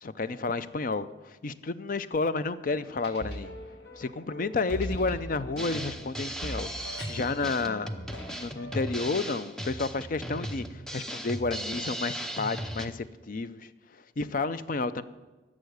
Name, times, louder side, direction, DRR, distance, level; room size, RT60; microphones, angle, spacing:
voice 1, 0.0-3.5 4.0-7.9 8.2-13.7 14.2-15.0, left 3 dB, 50° left, 14 dB, 0.5 m, -31 dB
sound 1, 2.7-8.8, equal, 85° left, 1.9 m, -41 dB
Drum kit, 5.6-12.9, equal, 5° left, 0.7 m, -37 dB
11.5 x 7.4 x 9.5 m, 1.2 s
head